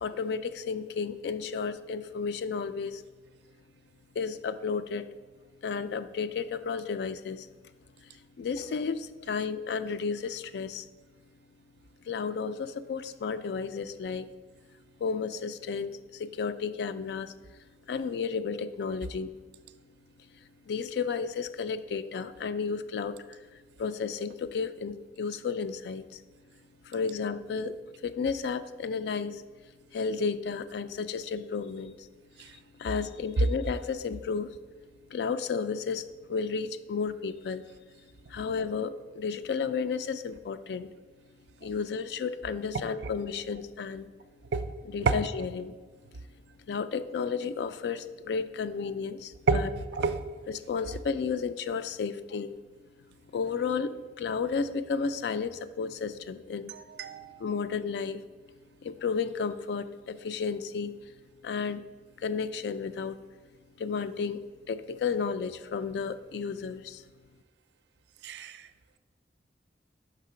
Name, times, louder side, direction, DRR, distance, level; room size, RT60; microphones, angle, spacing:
voice 1, 0.0-3.0 4.2-5.1 5.6-7.5 8.4-10.9 12.1-14.3 15.0-17.3 17.9-19.3 20.7-23.4 23.8-26.2 26.8-27.8 28.0-29.4 29.9-32.1 32.4-34.6 35.1-37.7 38.3-40.9 41.6-44.1 44.9-45.8 46.7-49.7 50.7-52.5 53.3-53.9 54.2-56.7 57.4-58.2 58.8-60.9 61.4-61.8 62.2-63.2 63.8-64.4 64.7-67.0, left 5 dB, 70° left, 12 dB, 0.3 m, -32 dB
voice 2, 56.7-57.4 68.2-68.6, right 4 dB, 75° right, 11 dB, 0.4 m, -28 dB
5.0 x 3.7 x 5.6 m, 1.3 s
head